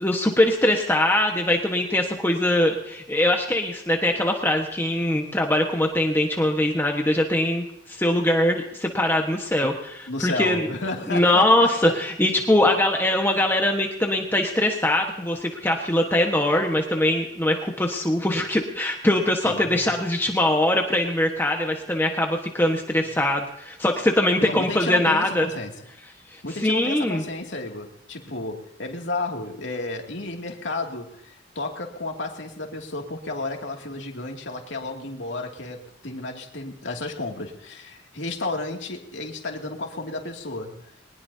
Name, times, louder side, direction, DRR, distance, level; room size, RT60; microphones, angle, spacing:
voice 1, 0.0-10.7 11.1-25.5 26.3-27.2, left 1 dB, 10° left, 2 dB, 1.3 m, -22 dB
voice 2, 10.1-11.9 19.4-19.7 24.4-25.7 26.4-40.8, left 2 dB, 70° left, 2 dB, 2.5 m, -32 dB
22.0 x 20.0 x 2.8 m, 0.82 s
head